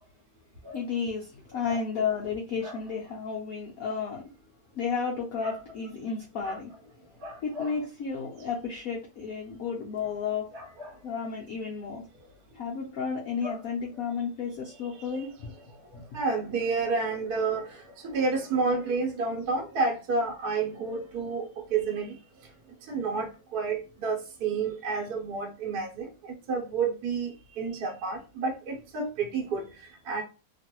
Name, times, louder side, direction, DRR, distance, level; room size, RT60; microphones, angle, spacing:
voice 1, 0.7-4.2 4.7-6.7 7.0-7.1 7.4-10.5 11.0-12.0 12.5-15.5 15.9-16.0, left 5 dB, 75° left, 0.8 m, -32 dB
voice 2, 7.2-7.7 10.5-10.9 13.4-13.6 15.1-15.2 15.9-22.2 22.8-30.2, right 4 dB, 60° right, 1.2 m, -30 dB
3.0 x 2.5 x 2.9 m
omnidirectional pair, 2.1 m